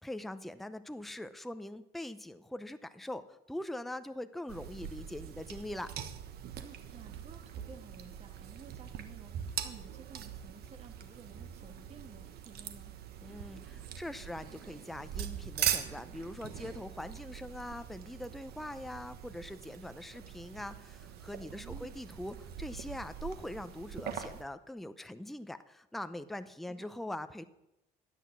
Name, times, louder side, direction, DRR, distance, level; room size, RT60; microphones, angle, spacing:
voice 1, 0.0-5.9 13.2-27.4, left 1 dB, ahead, 11 dB, 0.6 m, -42 dB
sound 1, 4.5-24.4, right 9 dB, 70° right, 1.3 m, -42 dB
voice 2, 6.6-12.9 21.5-21.9 26.7-26.9, right 5 dB, 40° right, 5 dB, 1.8 m, -53 dB
12.5 x 9.2 x 6.0 m, 0.89 s
cardioid pair, 110°, 17 cm